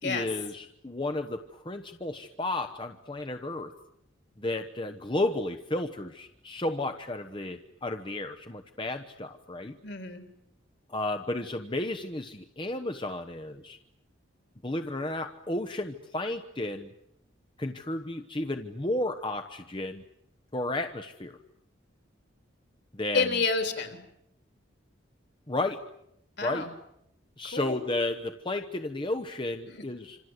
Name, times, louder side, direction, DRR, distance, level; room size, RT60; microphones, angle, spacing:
voice 1, 0.0-3.7 4.4-9.8 10.9-13.8 14.6-16.9 17.6-20.0 20.5-21.4 22.9-23.3 25.5-25.8 26.4-26.7 27.4-30.2, left 2 dB, 25° left, 7 dB, 1.1 m, -33 dB
voice 2, 9.8-10.2 23.1-24.0 26.4-26.7 27.5-27.8 29.7-29.8, left 4 dB, 55° left, 7 dB, 3.6 m, -29 dB
27.0 x 27.0 x 8.1 m, 0.78 s
head